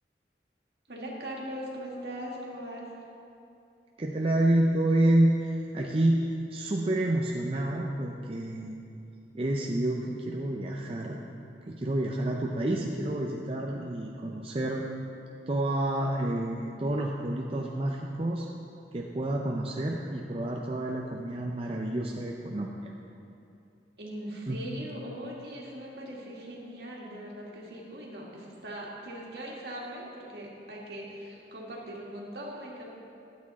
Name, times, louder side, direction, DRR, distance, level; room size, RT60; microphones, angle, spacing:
voice 1, 0.9-2.9 24.0-32.9, equal, 65° right, -3 dB, 2.0 m, -40 dB
voice 2, 4.0-8.8 9.3-11.2 11.7-14.8 15.5-18.5 18.9-22.9 24.5-24.6, right 1 dB, 30° right, -1 dB, 0.6 m, -28 dB
12.0 x 8.4 x 4.2 m, 2.7 s
head